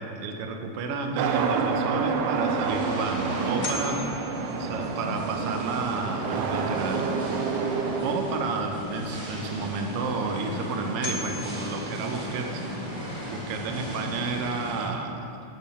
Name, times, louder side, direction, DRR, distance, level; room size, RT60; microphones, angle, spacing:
voice 1, 0.0-4.1 4.6-7.1 8.0-12.6 13.3-15.3, right 4 dB, 70° right, 4 dB, 1.4 m, -31 dB
sound 1, 0.8-14.9, equal, 50° right, 4.2 m, -36 dB
sound 2, 1.2-8.1, right 5 dB, 85° right, 1.4 m, -28 dB
sound 3, 2.2-2.3 2.8-2.9 3.6-5.2 10.3-10.4 11.0-12.7, left 3 dB, 80° left, 0.5 m, -38 dB
9.7 x 7.7 x 7.0 m, 2.7 s
omnidirectional pair, 3.6 m